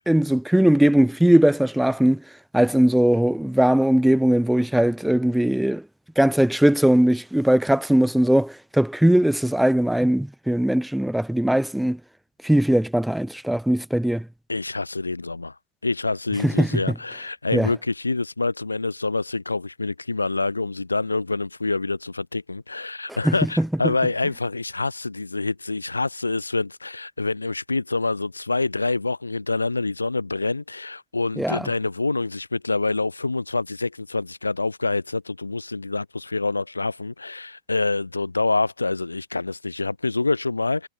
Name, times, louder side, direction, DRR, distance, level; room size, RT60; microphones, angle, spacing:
voice 1, 0.1-2.2 2.5-5.8 6.2-12.0 12.4-14.2 16.4-16.7 17.5-17.7 23.2-23.9 31.4-31.7, right 1 dB, ahead, 0.5 m, -19 dB
voice 2, 14.5-15.5 15.8-40.9, left 3 dB, 80° left, 0.5 m, -26 dB
figure-of-eight pair, 90°, 0 cm